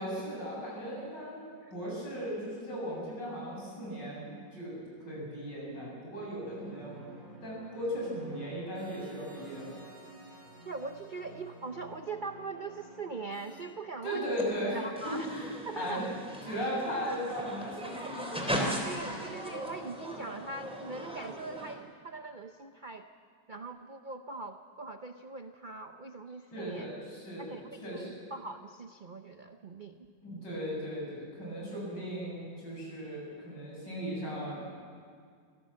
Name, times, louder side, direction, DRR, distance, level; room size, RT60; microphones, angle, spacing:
voice 1, 0.0-1.4 1.7-9.8 14.0-16.0 16.4-18.5 26.5-28.2 30.2-34.6, equal, 75° left, -4 dB, 8.7 m, -37 dB
sound 1, 6.4-13.6, right 2 dB, 25° right, 4.5 m, -52 dB
voice 2, 10.6-14.3 14.7-15.3 15.6-16.1 17.8-18.3 18.9-23.1 23.5-26.9 27.4-30.1, right 3 dB, 50° right, 7 dB, 0.5 m, -42 dB
sound 2, 14.4-14.5 15.0-21.8, equal, 5° right, 3.4 m, -38 dB
25.0 x 16.5 x 7.6 m, 2.1 s
omnidirectional pair, 1.9 m